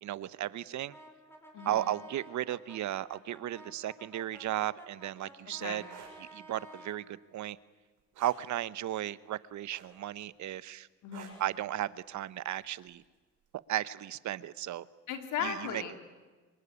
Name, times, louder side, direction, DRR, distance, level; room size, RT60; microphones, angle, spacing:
voice 1, 0.0-0.9 1.6-5.8 6.2-7.6 8.2-10.9 11.4-13.0 13.7-14.9 15.4-15.8, right 13 dB, 70° right, 17 dB, 0.9 m, -35 dB
Brass instrument, 0.9-7.1, right 1 dB, 10° left, 5.1 m, -52 dB
sound 1, 5.8-6.1 8.1-8.4 9.7-10.1 11.1-11.5 12.9-13.0, right 8 dB, 85° right, 6.5 m, -50 dB
voice 2, 11.0-11.4 15.1-16.0, left 8 dB, 85° left, 6 dB, 3.4 m, -36 dB
25.0 x 22.5 x 9.8 m, 1.3 s
cardioid pair, 90°, 30 cm